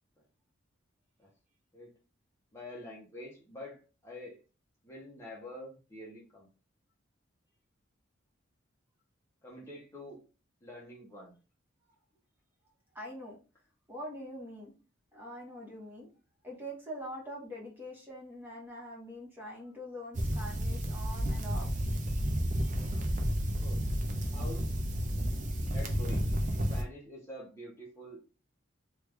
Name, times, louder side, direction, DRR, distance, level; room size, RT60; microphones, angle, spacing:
voice 1, 2.5-4.4 4.8-6.5 9.4-10.2 10.6-11.4 23.6-23.9 24.3-24.7 25.7-26.3 26.7-28.2, left 1 dB, 15° left, -5 dB, 0.6 m, -46 dB
voice 2, 12.9-13.4 13.9-14.7 15.1-16.1 16.4-21.7 22.2-22.3 22.6-23.1, equal, 10° right, -3 dB, 1.0 m, -44 dB
sound 1, 20.1-26.8, equal, 40° right, 0.5 m, -31 dB
3.2 x 2.3 x 3.3 m, 0.34 s
head